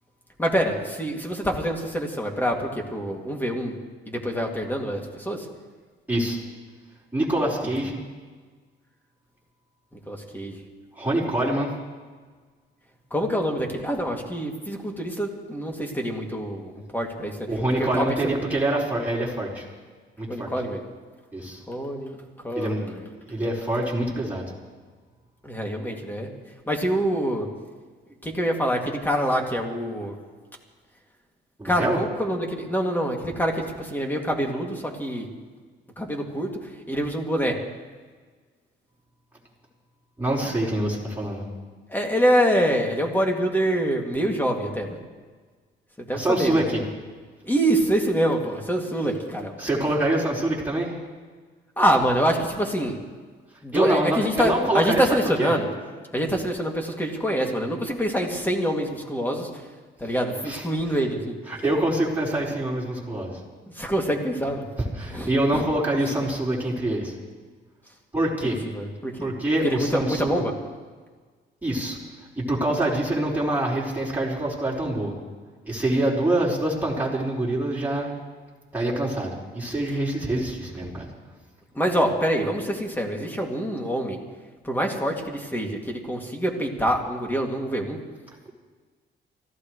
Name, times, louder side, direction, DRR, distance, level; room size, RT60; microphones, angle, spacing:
voice 1, 0.4-3.8 4.1-5.5 10.1-10.6 13.1-17.4 17.8-18.1 20.3-20.8 21.7-22.2 22.4-23.0 25.4-26.3 26.7-27.5 28.2-30.2 31.6-35.3 36.0-36.5 36.9-37.6 41.9-45.0 46.0-46.9 47.4-49.6 51.8-53.0 53.6-55.7 56.1-59.6 60.0-61.4 63.7-64.7 65.1-65.6 68.4-69.3 69.6-70.5 81.7-84.2 84.6-88.0, equal, 10° left, 1 dB, 2.7 m, -25 dB
voice 2, 6.1-6.4 7.1-8.0 10.9-11.8 17.5-19.7 20.2-20.5 21.3-21.6 22.5-22.9 23.3-24.5 31.6-32.0 40.2-41.4 46.1-46.8 49.6-50.9 53.7-55.5 60.4-60.6 61.5-63.4 65.0-67.1 68.1-68.6 69.2-70.4 71.6-72.0 72.4-75.2 75.6-78.1 78.7-81.1, right 1 dB, 10° right, -6 dB, 5.0 m, -25 dB
24.5 x 15.5 x 3.3 m, 1.4 s
cardioid pair, 90°, 20 cm